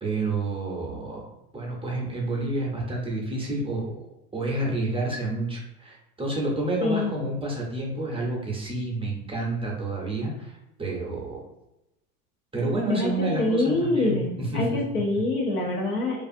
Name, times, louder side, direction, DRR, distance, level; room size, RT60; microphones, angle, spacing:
voice 1, 0.0-1.2 1.5-4.0 4.3-11.4 12.5-14.8, right 2 dB, 10° right, -3 dB, 0.5 m, -29 dB
voice 2, 6.8-7.1 12.9-16.2, left 2 dB, 90° left, -2 dB, 0.9 m, -25 dB
2.4 x 2.4 x 2.5 m, 0.93 s
hypercardioid pair, 85°, 47 cm